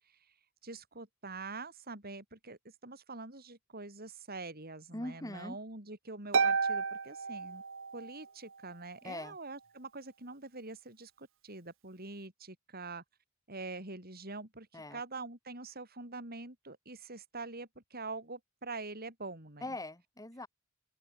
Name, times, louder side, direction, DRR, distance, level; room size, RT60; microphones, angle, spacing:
voice 1, 0.6-7.6 7.9-13.0 13.5-19.7, right 3 dB, 50° right, 7.1 m, -45 dB
voice 2, 4.9-5.6 9.0-9.4 14.7-15.0 19.6-20.5, left 1 dB, 15° left, 6.4 m, -41 dB
Harp, 6.3-8.2, right 5 dB, 65° right, 1.6 m, -31 dB
open air
head